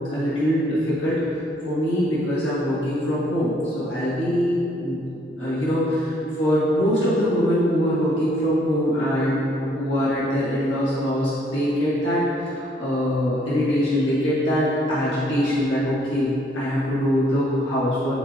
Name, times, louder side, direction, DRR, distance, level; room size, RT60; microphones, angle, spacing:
voice 1, 0.1-1.2 1.6-5.0 5.4-18.1, equal, 85° left, -10 dB, 1.5 m, -23 dB
11.0 x 3.9 x 2.5 m, 2.9 s
head